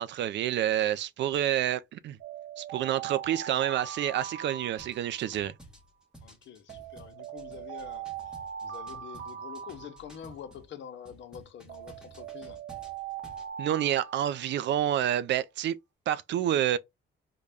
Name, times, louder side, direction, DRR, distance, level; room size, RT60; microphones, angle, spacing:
voice 1, 0.0-2.2 2.6-5.5 13.6-15.8 16.1-16.8, right 11 dB, 65° right, 0.4 m, -28 dB
Alarm, 2.2-5.5 6.7-10.5 11.7-14.9, right 8 dB, 80° right, 0.8 m, -41 dB
sound 1, 4.8-10.7 11.0-13.5, right 1 dB, 5° right, 1.0 m, -53 dB
voice 2, 6.2-8.1 8.6-12.6, left 9 dB, 65° left, 0.7 m, -46 dB
3.8 x 2.2 x 3.3 m
cardioid pair, 90°, 20 cm